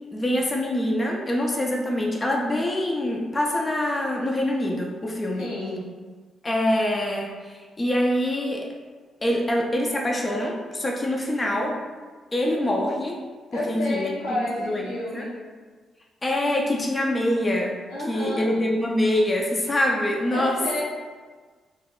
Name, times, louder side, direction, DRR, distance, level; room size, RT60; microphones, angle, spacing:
voice 1, 0.1-5.5 6.4-8.7 9.2-11.8 12.3-13.2 13.5-14.1 14.6-14.8 15.1-15.3 16.2-17.8 18.1-20.8, left 1 dB, 30° left, -1 dB, 0.5 m, -25 dB
voice 2, 5.4-5.8 13.5-15.3 17.9-18.5 20.3-20.8, left 1 dB, 90° left, -7 dB, 0.7 m, -30 dB
2.5 x 2.2 x 3.7 m, 1.5 s
supercardioid pair, 50°, 0 cm